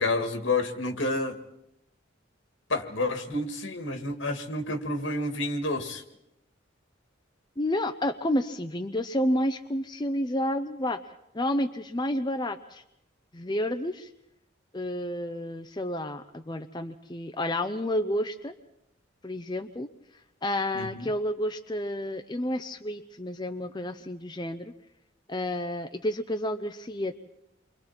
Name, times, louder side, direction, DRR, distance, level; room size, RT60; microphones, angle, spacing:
voice 1, 0.0-1.3 2.7-6.0 20.7-21.1, left 2 dB, 75° left, 6 dB, 2.2 m, -29 dB
voice 2, 7.6-11.0 11.3-12.8 13.3-14.1 14.7-18.5 19.2-19.9 20.4-24.7 25.3-27.2, left 1 dB, 20° left, 6 dB, 0.7 m, -30 dB
29.5 x 24.0 x 4.4 m, 0.83 s
head